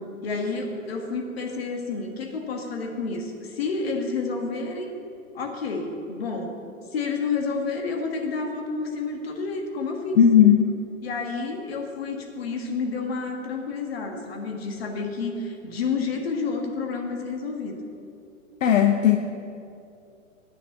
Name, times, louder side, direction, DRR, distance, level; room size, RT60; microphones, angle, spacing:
voice 1, 0.2-4.9 5.3-6.6 6.9-10.2 11.0-17.8, left 4 dB, 50° left, 2 dB, 1.6 m, -30 dB
voice 2, 10.2-10.7 18.6-19.2, left 9 dB, 70° left, 6 dB, 0.8 m, -16 dB
9.4 x 6.7 x 8.2 m, 2.6 s
hypercardioid pair, 175°, 40 cm